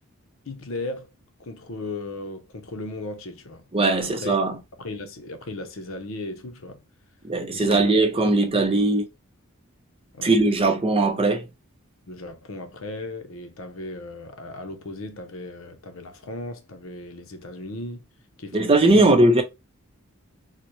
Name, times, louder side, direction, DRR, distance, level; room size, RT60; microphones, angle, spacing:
voice 1, 0.5-1.1 1.4-3.7 4.0-4.4 4.8-6.8 7.5-7.9 8.2-8.8 10.1-10.3 12.1-18.0 18.4-19.1, left 2 dB, 75° left, 0.7 m, -36 dB
voice 2, 3.7-4.6 7.2-9.0 10.2-11.4 18.5-19.4, right 2 dB, 25° right, 0.5 m, -19 dB
4.0 x 2.1 x 3.0 m
head